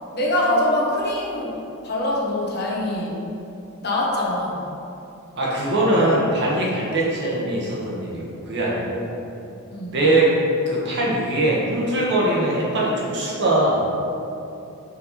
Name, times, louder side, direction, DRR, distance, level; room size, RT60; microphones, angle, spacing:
voice 1, 0.1-3.2 3.8-4.7 9.7-10.0, left 1 dB, 50° left, -4 dB, 1.1 m, -24 dB
voice 2, 5.4-9.1 9.9-10.4 10.7-13.9, right 1 dB, 50° right, -5 dB, 1.3 m, -21 dB
5.5 x 5.4 x 4.1 m, 2.8 s
head